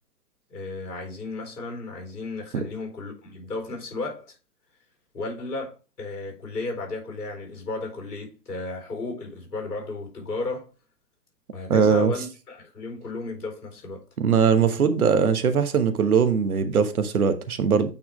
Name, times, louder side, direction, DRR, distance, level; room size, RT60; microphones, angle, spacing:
voice 1, 0.5-4.4 5.1-10.7 11.5-14.0, left 3 dB, 65° left, 4.5 m, -34 dB
voice 2, 11.7-12.1 14.2-17.9, right 6 dB, 60° right, 1.2 m, -21 dB
8.7 x 4.3 x 3.5 m
figure-of-eight pair, 125°, 48 cm